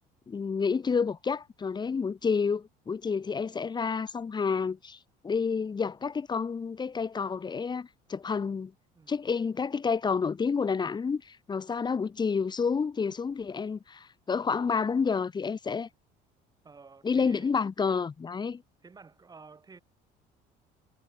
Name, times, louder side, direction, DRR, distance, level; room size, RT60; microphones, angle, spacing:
voice 1, 0.3-5.0 5.2-8.7 9.1-15.9 17.0-18.6, left 5 dB, 25° left, 2.2 m, -29 dB
voice 2, 16.6-17.5 18.8-19.8, right 4 dB, 20° right, 7.1 m, -51 dB
cardioid pair, 120°, 18 cm